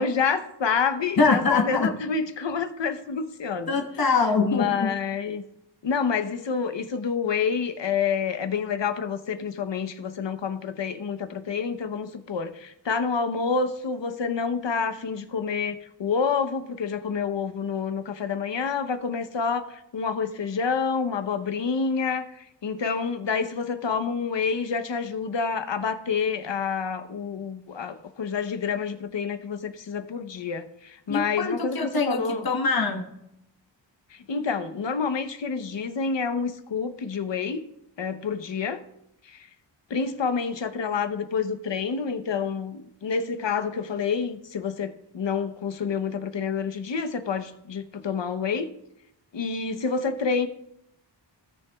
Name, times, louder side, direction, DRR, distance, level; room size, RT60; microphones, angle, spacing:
voice 1, 0.0-3.8 4.4-5.4 5.8-32.5 34.1-37.6 38.0-38.8 39.2-39.5 39.9-48.7 49.3-50.5, left 5 dB, 70° left, 9 dB, 0.9 m, -28 dB
voice 2, 1.2-1.9 3.7-4.9 31.1-33.1, left 4 dB, 50° left, 2 dB, 1.4 m, -23 dB
17.0 x 6.8 x 2.3 m, 0.81 s
wide cardioid pair, 105°, 45 cm